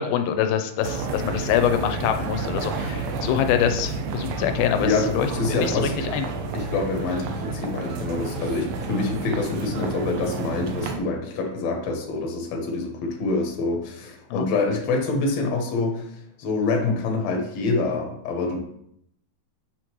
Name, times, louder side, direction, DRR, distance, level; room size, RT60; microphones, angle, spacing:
voice 1, 0.0-6.3 14.3-14.5, left 9 dB, 90° left, 7 dB, 2.4 m, -25 dB
sound 1, 0.8-11.0, right 4 dB, 80° right, 2.4 m, -30 dB
voice 2, 4.8-5.9 6.5-16.1 16.4-18.6, left 3 dB, 60° left, 1 dB, 2.1 m, -26 dB
8.0 x 5.1 x 3.1 m, 0.74 s
omnidirectional pair, 4.1 m